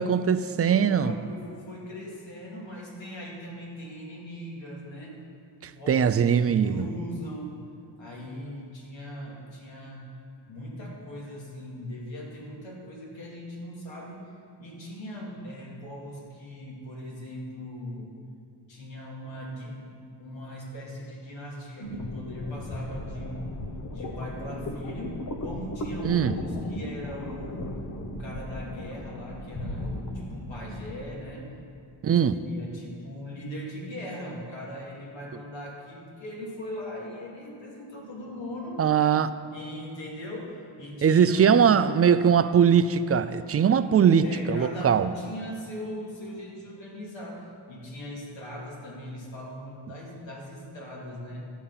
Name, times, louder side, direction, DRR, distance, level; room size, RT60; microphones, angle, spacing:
voice 1, 0.0-1.2 5.6-6.8 26.0-26.3 32.0-32.4 38.8-39.3 41.0-45.1, right 7 dB, 35° right, 0.4 m, -21 dB
voice 2, 0.6-5.2 5.8-7.6 8.0-10.1 10.5-14.2 14.6-18.1 18.7-23.6 23.9-31.5 32.1-32.2 32.5-38.8 39.5-41.6 44.2-51.5, equal, 85° left, 2.6 m, -40 dB
sound 1, 21.8-31.2, left 1 dB, 45° left, 1.1 m, -36 dB
12.0 x 8.6 x 5.6 m
wide cardioid pair, 110°, 44 cm